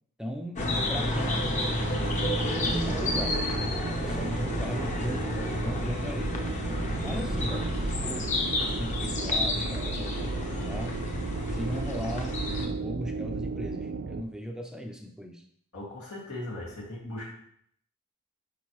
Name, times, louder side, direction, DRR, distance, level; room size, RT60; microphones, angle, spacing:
voice 1, 0.2-1.3 2.2-3.4 3.8-5.3 5.6-6.4 7.0-11.0 11.5-15.4, equal, 5° right, 3 dB, 0.4 m, -37 dB
sound 1, 0.6-12.7, left 1 dB, 30° left, 0.8 m, -30 dB
sound 2, 1.8-14.2, right 4 dB, 70° right, 0.5 m, -35 dB
voice 2, 15.7-17.3, left 1 dB, 85° left, -4 dB, 2.1 m, -38 dB
8.2 x 5.3 x 3.1 m, 0.66 s
head